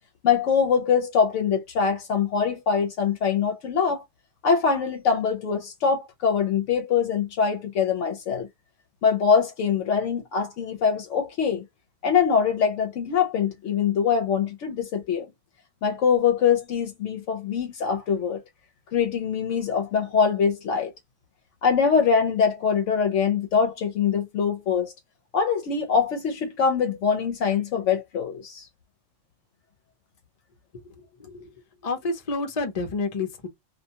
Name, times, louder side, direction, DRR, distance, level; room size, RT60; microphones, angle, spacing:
voice 1, 0.2-4.0 4.4-8.5 9.0-11.6 12.0-15.3 15.8-18.4 18.9-20.9 21.6-24.9 25.3-28.7, left 6 dB, 75° left, 0.9 m, -23 dB
voice 2, 30.7-31.5 31.8-33.5, left 3 dB, 40° left, 0.7 m, -30 dB
2.4 x 2.2 x 2.7 m
omnidirectional pair, 1.3 m